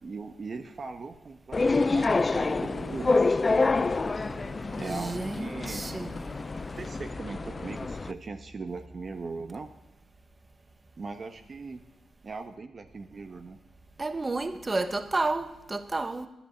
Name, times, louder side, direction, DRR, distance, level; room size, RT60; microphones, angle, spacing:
voice 1, 0.0-3.3 4.8-5.9 6.8-9.7 11.0-11.8 12.2-13.6, right 4 dB, 50° right, 1.0 m, -39 dB
sound 1, 1.5-8.1, left 3 dB, 35° left, 0.4 m, -27 dB
sound 2, 2.1-7.8, right 4 dB, 80° right, 3.0 m, -47 dB
voice 2, 4.8-6.4 14.0-16.3, right 3 dB, 30° right, 1.1 m, -31 dB
10.5 x 10.0 x 8.5 m
cardioid pair, 70°, 0 cm